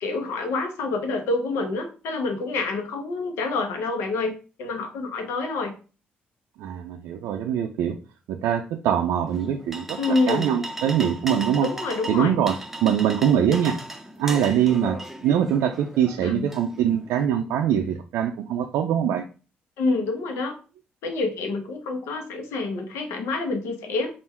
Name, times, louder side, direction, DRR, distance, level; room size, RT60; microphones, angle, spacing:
voice 1, 0.0-4.3 4.6-5.7 10.0-10.5 11.6-12.3 16.2-16.5 19.8-20.5 21.0-24.1, left 3 dB, 80° left, 6 dB, 0.8 m, -27 dB
voice 2, 6.6-8.0 8.3-11.7 12.1-13.8 14.2-19.2, right 9 dB, 80° right, 4 dB, 0.4 m, -23 dB
sound 1, 9.3-17.3, right 1 dB, 5° right, 0.7 m, -37 dB
3.5 x 2.5 x 4.3 m, 0.35 s
supercardioid pair, 60°, 4 cm